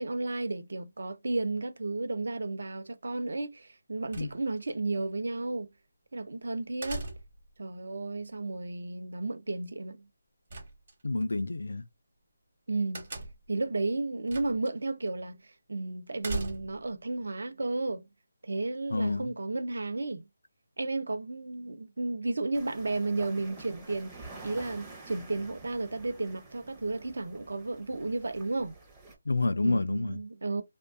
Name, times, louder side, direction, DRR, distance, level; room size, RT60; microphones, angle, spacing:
voice 1, 0.0-5.7 6.1-7.0 7.6-10.1 12.7-18.1 18.4-20.3 20.8-28.7 29.6-30.6, right 2 dB, 70° right, 0.5 m, -33 dB
sound 1, 4.1-4.7 6.8-7.5 10.5-11.3 12.9-13.6 14.3-14.7 15.1-15.2 16.2-16.9, right 2 dB, 45° right, 0.9 m, -38 dB
voice 2, 11.0-11.9 18.9-19.3 29.3-30.2, left 2 dB, 85° left, 0.3 m, -28 dB
sound 2, 22.5-29.2, right 3 dB, 15° right, 0.5 m, -49 dB
2.5 x 2.2 x 2.4 m
figure-of-eight pair, 170°, 0 cm